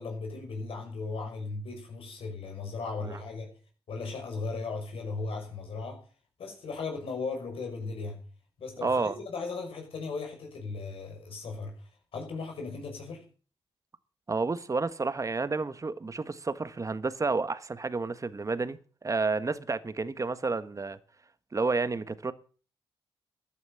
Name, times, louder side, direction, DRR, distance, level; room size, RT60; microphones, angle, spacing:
voice 1, 0.0-3.5 3.9-6.1 6.4-8.2 8.6-13.2, left 4 dB, 75° left, 6.0 m, -37 dB
voice 2, 8.8-9.2 14.3-21.0 21.5-22.3, right 3 dB, 35° right, 1.5 m, -30 dB
14.5 x 9.5 x 7.1 m
cardioid pair, 65°, 10 cm